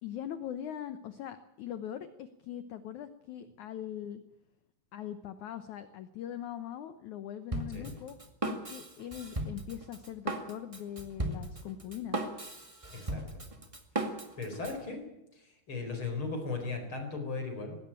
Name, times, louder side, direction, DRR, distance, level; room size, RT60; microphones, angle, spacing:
voice 1, 0.0-4.2 4.9-12.3, left 10 dB, 80° left, 11 dB, 1.7 m, -41 dB
Drum kit, 7.5-14.8, right 2 dB, 30° right, 0.5 m, -37 dB
voice 2, 12.9-13.4 14.4-15.0 15.3-17.8, left 3 dB, 30° left, 4 dB, 4.9 m, -37 dB
19.5 x 17.0 x 8.9 m, 0.89 s
omnidirectional pair, 4.7 m